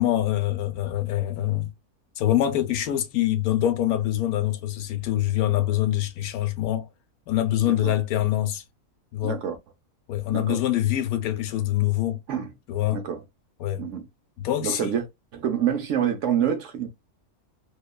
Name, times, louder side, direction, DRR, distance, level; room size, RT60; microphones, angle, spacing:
voice 1, 0.0-1.7 2.2-6.9 7.3-8.6 9.1-9.4 10.1-12.2 12.7-13.0 13.6-13.8 14.4-14.9, left 13 dB, 90° left, 1.1 m, -24 dB
voice 2, 7.7-8.0 9.2-9.6 10.3-10.6 12.3-12.5 12.9-13.2 13.8-14.0 14.6-15.0 15.3-16.9, right 9 dB, 65° right, 0.9 m, -27 dB
2.9 x 2.2 x 2.2 m
omnidirectional pair, 1.5 m